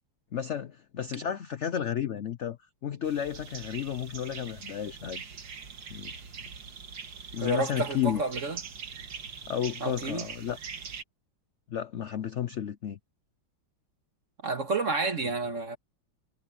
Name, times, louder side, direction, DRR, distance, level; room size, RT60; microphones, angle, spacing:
voice 1, 0.3-2.6 2.8-5.2 5.9-6.1 7.3-8.2 9.5-10.6 11.7-13.0, left 9 dB, 70° left, 0.6 m, -32 dB
sound 1, 3.0-11.0, right 6 dB, 70° right, 2.4 m, -42 dB
voice 2, 7.4-8.6 9.8-10.3 14.4-15.8, right 3 dB, 40° right, 2.2 m, -30 dB
omnidirectional pair, 2.1 m